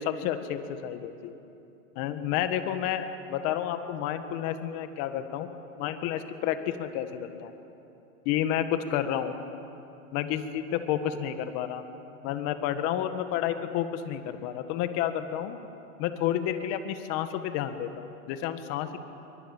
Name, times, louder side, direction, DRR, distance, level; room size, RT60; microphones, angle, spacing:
voice 1, 0.0-1.3 2.0-5.5 5.8-7.5 8.3-9.4 10.1-11.8 12.2-15.6 16.0-19.0, left 10 dB, 35° left, 9 dB, 1.7 m, -30 dB
29.0 x 23.5 x 7.3 m, 2.9 s
hypercardioid pair, 140°, 41 cm